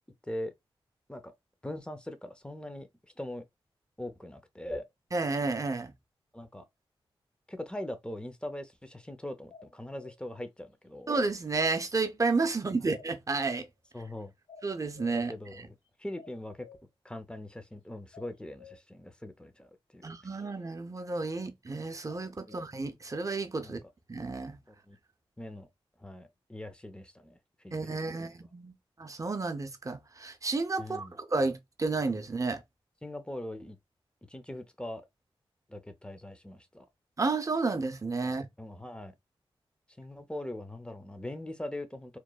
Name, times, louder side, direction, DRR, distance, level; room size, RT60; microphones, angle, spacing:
voice 1, 1.6-2.9 3.2-3.4 4.0-4.8 6.3-6.7 7.5-11.1 13.9-14.3 15.1-16.7 17.0-20.1 22.5-22.6 23.6-23.9 24.7-25.0 25.4-25.7 26.0-27.4 27.6-28.3 30.8-31.1 33.0-33.8 34.3-35.0 35.7-36.9 38.2-39.2 40.0-42.2, left 1 dB, 10° left, 0.6 m, -41 dB
voice 2, 5.1-5.9 11.1-13.7 14.6-15.3 20.0-23.8 24.1-24.6 27.7-28.7 29.0-32.6 37.2-38.5, right 3 dB, 35° right, 0.6 m, -31 dB
sound 1, 9.5-10.2 11.1-11.8 12.9-13.7 14.5-15.2 16.1-16.8 18.1-18.8 22.1-22.7, left 6 dB, 75° left, 1.0 m, -52 dB
3.0 x 2.1 x 2.2 m
cardioid pair, 45°, 10 cm